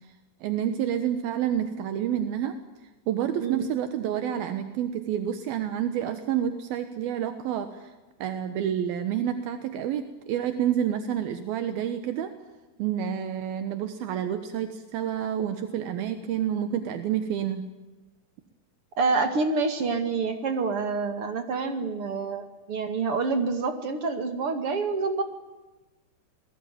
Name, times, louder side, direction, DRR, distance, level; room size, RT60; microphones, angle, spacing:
voice 1, 0.4-2.6 3.1-7.9 8.2-12.3 12.8-17.6, right 9 dB, 75° right, 9 dB, 2.9 m, -29 dB
voice 2, 19.0-25.2, right 4 dB, 45° right, 7 dB, 2.3 m, -27 dB
26.5 x 20.5 x 9.2 m, 1.1 s
omnidirectional pair, 4.4 m